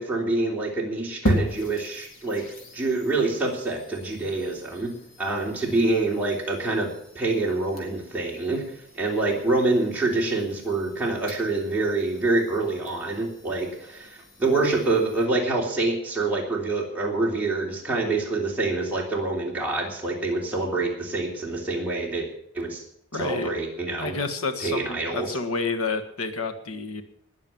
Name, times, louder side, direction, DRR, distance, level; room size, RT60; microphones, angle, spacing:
voice 1, 0.0-2.5 2.7-4.9 5.2-8.6 8.9-22.3 22.5-22.8 23.2-24.1 24.6-25.3, right 2 dB, 10° right, -3 dB, 3.2 m, -26 dB
sound 1, 1.3-15.3, equal, 65° left, 4.0 m, -36 dB
voice 2, 23.1-23.5 24.0-27.0, left 4 dB, 90° left, 6 dB, 1.6 m, -29 dB
20.0 x 7.2 x 7.2 m, 0.71 s
head